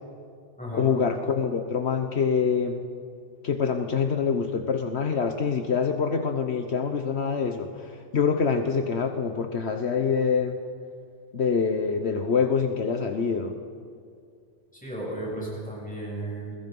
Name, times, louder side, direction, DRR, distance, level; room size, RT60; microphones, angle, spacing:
voice 1, 0.7-2.8 3.4-10.6 11.3-13.6, left 6 dB, 65° left, 6 dB, 1.4 m, -25 dB
voice 2, 14.7-16.6, right 1 dB, 5° left, -4 dB, 7.8 m, -34 dB
29.0 x 21.0 x 5.5 m, 2.3 s
omnidirectional pair, 1.2 m